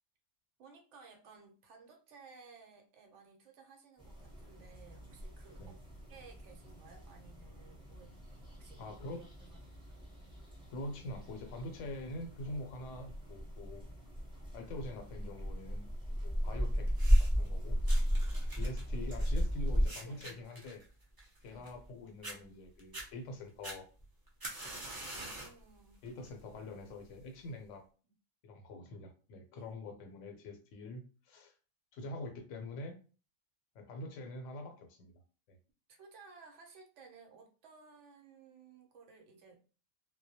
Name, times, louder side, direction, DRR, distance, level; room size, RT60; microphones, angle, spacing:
voice 1, 0.6-5.8 6.1-8.2 8.5-9.6 9.9-10.1 20.0-20.5 21.4-21.7 25.1-26.0 29.5-29.7 35.9-39.6, right 4 dB, 75° right, 3 dB, 0.9 m, -58 dB
sound 1, 4.0-19.9, equal, 5° right, 0.7 m, -35 dB
voice 2, 8.8-9.2 10.7-13.8 14.5-15.9 16.2-16.9 17.2-17.8 18.5-20.8 21.4-23.9 26.0-27.8 28.4-31.5 31.9-33.0 33.7-35.2, left 1 dB, 75° left, 5 dB, 0.9 m, -45 dB
sound 2, 16.9-17.5 17.9-21.9 22.2-22.4 22.8-23.1 23.6-25.6 26.1-26.4 27.2-27.3, right 1 dB, 30° right, 0.4 m, -46 dB
2.2 x 2.0 x 2.7 m, 0.36 s
omnidirectional pair, 1.3 m